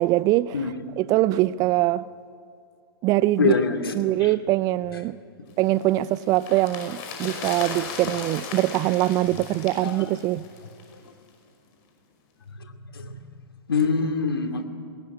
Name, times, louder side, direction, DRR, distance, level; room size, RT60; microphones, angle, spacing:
voice 1, 0.0-2.0 3.0-3.6 3.9-5.2 5.6-10.4, right 16 dB, 30° right, 0.5 m, -23 dB
voice 2, 3.4-3.9 9.8-9.9 12.9-13.1 13.7-14.7, left 5 dB, 75° left, 2.6 m, -23 dB
sound 1, 5.6-11.0 11.3-11.4, left 5 dB, 40° left, 5.4 m, -37 dB
20.5 x 18.0 x 9.7 m
figure-of-eight pair, 110°, 13 cm